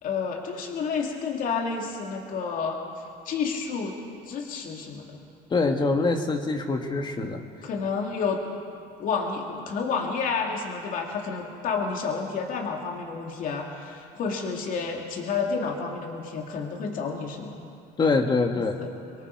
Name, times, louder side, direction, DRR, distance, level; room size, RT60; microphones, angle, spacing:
voice 1, 0.0-2.8 3.3-4.0 4.3-5.2 7.6-8.4 9.0-17.6 18.5-18.9, left 5 dB, 50° left, 1 dB, 2.7 m, -30 dB
voice 2, 5.5-7.5 18.0-18.7, left 3 dB, 25° left, 4 dB, 1.8 m, -24 dB
24.5 x 23.0 x 4.9 m, 2.4 s
cardioid pair, 135°, 18 cm